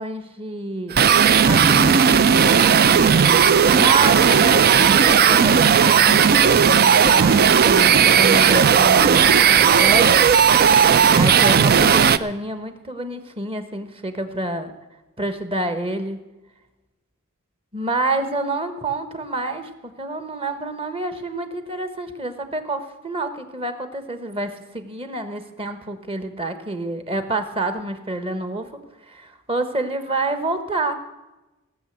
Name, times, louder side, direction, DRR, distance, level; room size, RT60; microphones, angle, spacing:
voice 1, 0.0-10.2 11.2-14.7 15.2-16.2 17.7-28.7 29.1-30.9, right 2 dB, 25° right, 8 dB, 1.3 m, -28 dB
sound 1, 0.9-12.2, right 7 dB, 45° right, 0.5 m, -15 dB
17.0 x 7.0 x 8.1 m, 1.0 s
head